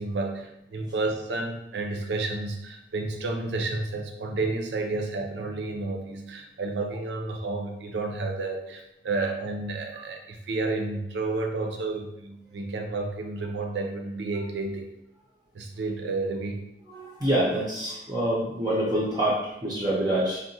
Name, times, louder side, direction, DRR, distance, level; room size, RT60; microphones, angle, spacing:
voice 1, 0.0-14.9 15.5-16.6, right 3 dB, 85° right, 3 dB, 0.5 m, -31 dB
voice 2, 16.9-20.4, right 1 dB, 20° right, -6 dB, 0.4 m, -26 dB
3.7 x 2.1 x 2.6 m, 0.84 s
head